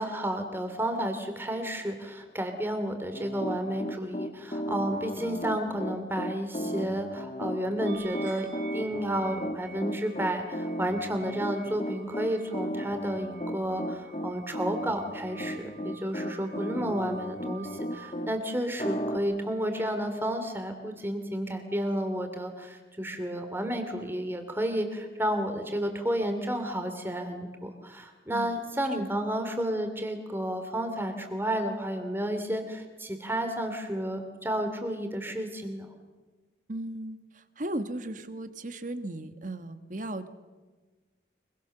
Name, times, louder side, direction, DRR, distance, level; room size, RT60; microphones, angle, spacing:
voice 1, 0.0-35.9, equal, 10° right, 6 dB, 2.8 m, -31 dB
Piano, 3.1-18.3 18.8-19.2, equal, 35° left, 1.3 m, -35 dB
sound 1, 7.8-18.2, right 6 dB, 60° right, 4.8 m, -50 dB
voice 2, 36.7-40.3, right 1 dB, 45° right, 10 dB, 1.4 m, -36 dB
24.5 x 23.0 x 6.7 m, 1.3 s
head